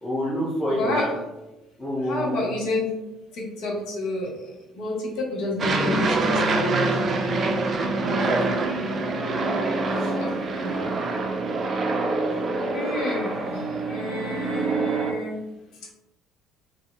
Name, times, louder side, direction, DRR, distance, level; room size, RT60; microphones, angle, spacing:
voice 1, 0.0-1.1 1.8-2.5 8.1-8.6, equal, 30° left, -9 dB, 0.9 m, -27 dB
voice 2, 0.6-1.2 2.0-3.0 3.3-4.4 4.7-6.9 10.0-11.0 12.7-15.4, left 1 dB, 65° left, -2 dB, 0.7 m, -29 dB
Aircraft, 5.6-15.1, right 3 dB, 45° right, 0.3 m, -25 dB
2.7 x 2.0 x 2.5 m, 0.98 s
hypercardioid pair, 55°, 0 cm